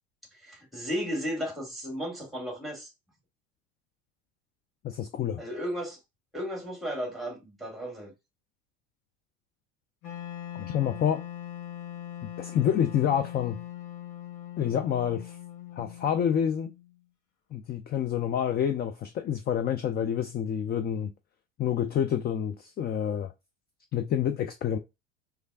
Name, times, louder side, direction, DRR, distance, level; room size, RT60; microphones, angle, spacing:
voice 1, 0.4-2.9 5.4-6.0 6.3-8.1, equal, ahead, 1.9 m, -34 dB
voice 2, 4.8-5.4 10.5-11.2 12.4-13.6 14.6-15.4 15.8-16.7 17.5-21.1 21.6-23.3 23.9-24.8, left 9 dB, 25° left, 0.4 m, -28 dB
Wind instrument woodwind instrument, 10.0-17.0, left 11 dB, 45° left, 1.2 m, -41 dB
3.4 x 3.3 x 2.3 m
hypercardioid pair, 85°, 39 cm